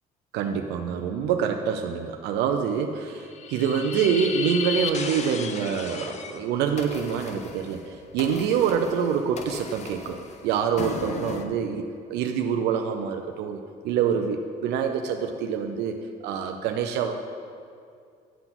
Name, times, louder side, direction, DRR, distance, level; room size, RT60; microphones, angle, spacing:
voice 1, 0.3-10.2 10.4-11.8 12.1-16.0 16.2-17.1, right 7 dB, 85° right, 5 dB, 0.5 m, -26 dB
sound 1, 3.1-6.4 6.8-11.5, left 6 dB, 40° left, 0.7 m, -35 dB
10.5 x 4.0 x 5.9 m, 2.3 s
cardioid pair, 110°, 17 cm